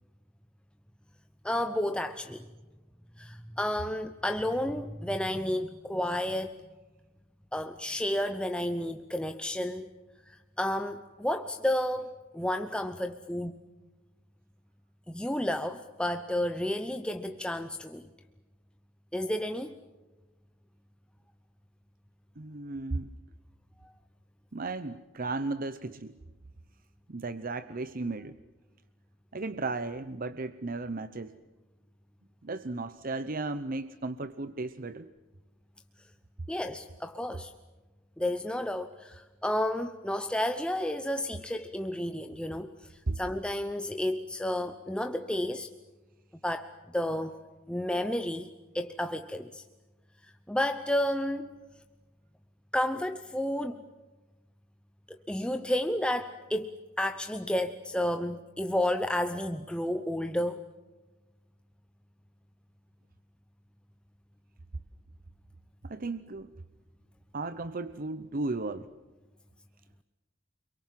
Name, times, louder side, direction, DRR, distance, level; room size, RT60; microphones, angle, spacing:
voice 1, 1.4-2.5 3.2-6.6 7.5-9.9 10.3-13.6 15.1-18.1 19.1-19.7 36.5-37.5 38.2-45.7 46.4-47.4 47.7-49.6 50.2-51.5 52.7-53.8 55.1-56.7 57.0-60.6, left 1 dB, 5° left, 7 dB, 0.8 m, -31 dB
voice 2, 22.4-23.1 24.5-26.2 27.1-28.4 29.3-31.4 32.4-35.1 43.1-43.2 65.8-66.5 67.3-68.9, right 3 dB, 45° right, 13 dB, 0.8 m, -35 dB
30.0 x 23.0 x 7.6 m, 1.2 s
head